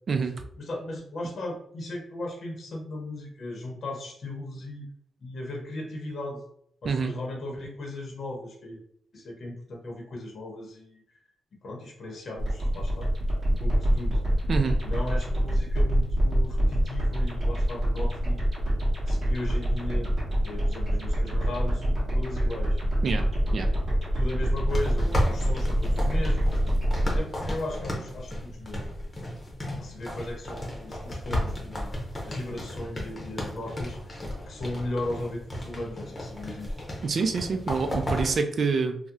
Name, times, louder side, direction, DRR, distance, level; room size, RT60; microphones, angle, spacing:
voice 1, 0.6-4.8 5.2-6.4 6.8-8.8 9.1-11.0 11.6-13.1 13.5-14.2 14.8-18.4 19.0-20.1 20.4-22.8 23.6-23.7 24.0-26.6 27.1-28.9 29.8-32.0 32.2-34.2 34.4-36.8, left 1 dB, 50° left, 0 dB, 0.7 m, -37 dB
voice 2, 6.8-7.2 14.5-14.8 23.0-23.2 23.5-23.7 37.0-39.0, right 5 dB, 50° right, 7 dB, 0.4 m, -26 dB
sound 1, 12.4-27.2, equal, 30° right, 1.2 m, -25 dB
sound 2, 24.7-38.4, left 1 dB, 20° left, 0.8 m, -34 dB
2.8 x 2.0 x 3.6 m, 0.65 s
wide cardioid pair, 135°, 0 cm